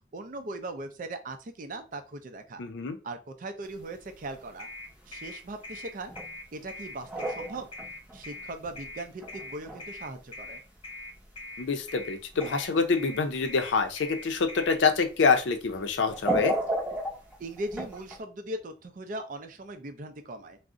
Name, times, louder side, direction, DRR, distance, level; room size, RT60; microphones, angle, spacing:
voice 1, 0.1-2.6 3.0-4.7 5.1-6.1 6.5-7.7 8.1-10.6 17.4-20.6, right 2 dB, 45° right, 8 dB, 0.4 m, -39 dB
voice 2, 2.6-3.0 11.6-16.5, left 4 dB, 80° left, 6 dB, 0.5 m, -26 dB
sound 1, 3.8-4.2 4.5-4.6 5.6-5.7 6.1-6.4 6.7-8.9 9.2-9.9 10.2-10.3 11.2-11.3 12.3-12.8 14.7-15.0 15.4-15.5 16.1-18.2, right 1 dB, 10° right, 0.6 m, -33 dB
sound 2, 4.6-14.8, left 2 dB, 30° left, 0.6 m, -42 dB
2.4 x 2.0 x 3.6 m, 0.32 s
head